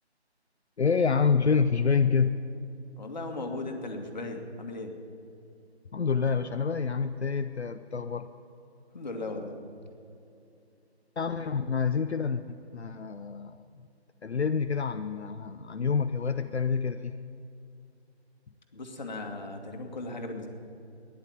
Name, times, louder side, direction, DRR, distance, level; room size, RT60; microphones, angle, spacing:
voice 1, 0.8-2.4 5.9-8.3 11.2-13.9 14.2-17.1, left 5 dB, 75° left, 9 dB, 0.7 m, -27 dB
voice 2, 3.0-4.9 8.9-9.6 11.4-11.5 18.7-20.5, left 2 dB, 40° left, 3 dB, 1.9 m, -37 dB
13.5 x 10.5 x 9.3 m, 2.6 s
figure-of-eight pair, 155°, 33 cm